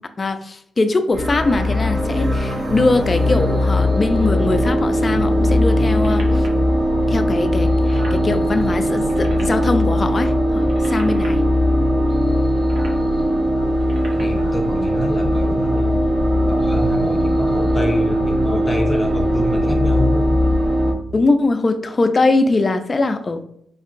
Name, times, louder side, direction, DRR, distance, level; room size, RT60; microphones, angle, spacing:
voice 1, 0.2-6.5 7.1-11.4 21.1-23.4, left 3 dB, 35° left, 8 dB, 0.4 m, -21 dB
sound 1, 1.1-20.9, equal, 35° right, 0.9 m, -19 dB
sound 2, 5.8-6.6 7.3-7.4 7.6-8.2 8.9-9.8 10.5-11.3 12.5-13.0 13.7-14.6 15.3-15.4, right 2 dB, 80° right, 0.9 m, -38 dB
voice 2, 14.1-16.1 16.5-20.3, equal, 15° left, 3 dB, 0.8 m, -26 dB
5.1 x 2.7 x 2.5 m, 0.71 s
cardioid pair, 95°, 0 cm